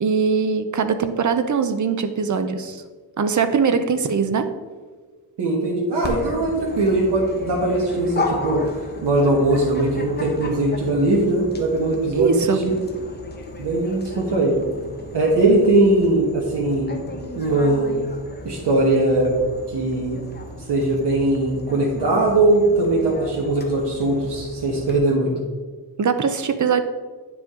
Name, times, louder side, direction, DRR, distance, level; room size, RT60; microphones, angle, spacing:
voice 1, 0.0-2.8 3.2-4.5 12.1-12.6 26.0-26.8, right 5 dB, 50° right, 9 dB, 0.6 m, -21 dB
voice 2, 5.4-8.6 9.0-12.4 12.6-12.8 13.6-14.6 15.1-17.1 17.3-17.9 18.4-19.3 19.7-20.2 20.7-25.3, right 2 dB, 85° right, -3 dB, 1.3 m, -20 dB
Dog, 6.0-25.0, left 2 dB, 25° left, 0.9 m, -34 dB
9.6 x 5.0 x 3.7 m, 1.4 s
wide cardioid pair, 155°, 40 cm